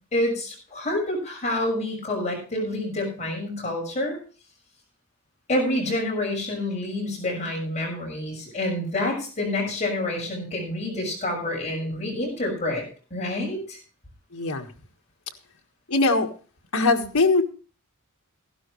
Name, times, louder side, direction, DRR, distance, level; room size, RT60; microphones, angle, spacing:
voice 1, 0.1-4.2 5.5-12.8 13.1-13.8, left 1 dB, 30° left, -1 dB, 6.2 m, -28 dB
voice 2, 14.3-14.7 15.9-16.3 16.7-17.4, left 3 dB, 75° left, 3 dB, 1.7 m, -21 dB
15.5 x 12.5 x 3.2 m, 0.37 s
head